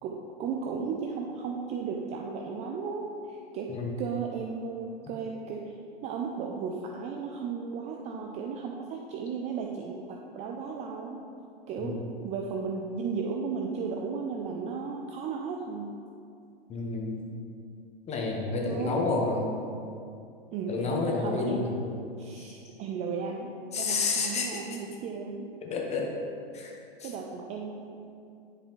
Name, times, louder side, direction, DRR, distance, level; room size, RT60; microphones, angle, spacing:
voice 1, 0.0-3.7 4.0-5.7 6.0-11.2 11.7-12.0 12.2-15.9 18.6-19.0 20.5-21.6 22.2-25.5 27.0-28.1, right 5 dB, 20° right, 1 dB, 0.4 m, -35 dB
voice 2, 16.7-17.2 18.1-19.6 20.7-21.9 23.7-24.8 25.6-26.1 26.5-27.1, left 3 dB, 20° left, -1 dB, 1.2 m, -30 dB
10.5 x 5.0 x 3.1 m, 2.5 s
hypercardioid pair, 110°, 31 cm